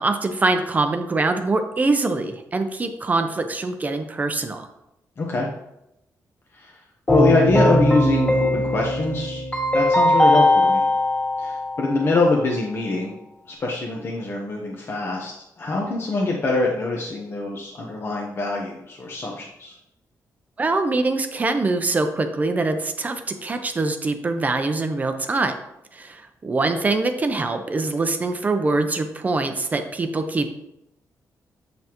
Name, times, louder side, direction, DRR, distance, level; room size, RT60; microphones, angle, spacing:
voice 1, 0.0-4.7 20.6-25.5 25.9-30.5, right 3 dB, 25° right, 7 dB, 0.6 m, -23 dB
voice 2, 5.2-5.5 6.5-6.8 7.1-9.4 9.7-10.8 11.4-13.2 13.5-19.7, left 2 dB, 40° left, -2 dB, 0.9 m, -24 dB
Keyboard (musical), 7.1-12.0, left 1 dB, 25° left, 2.0 m, -19 dB
7.7 x 5.5 x 3.0 m, 0.84 s
wide cardioid pair, 145°, 6 cm